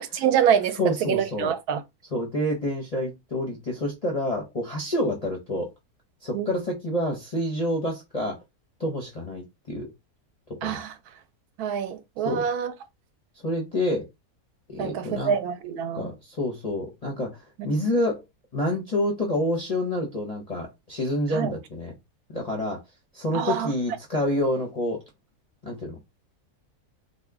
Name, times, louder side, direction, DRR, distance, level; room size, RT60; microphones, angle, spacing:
voice 1, 0.0-1.8 6.3-6.5 10.6-10.9 11.6-12.7 14.8-16.1 17.8-17.9 21.3-21.5 23.3-23.7, right 8 dB, 80° right, 1.1 m, -26 dB
voice 2, 0.8-1.5 2.1-5.7 6.2-8.4 8.8-9.9 10.5-10.8 12.2-12.4 13.4-14.1 14.7-15.3 15.9-17.4 17.6-18.2 18.5-21.9 22.3-22.8 23.1-25.0 25.6-26.0, left 1 dB, 40° left, 0.5 m, -28 dB
2.8 x 2.1 x 3.4 m
omnidirectional pair, 1.6 m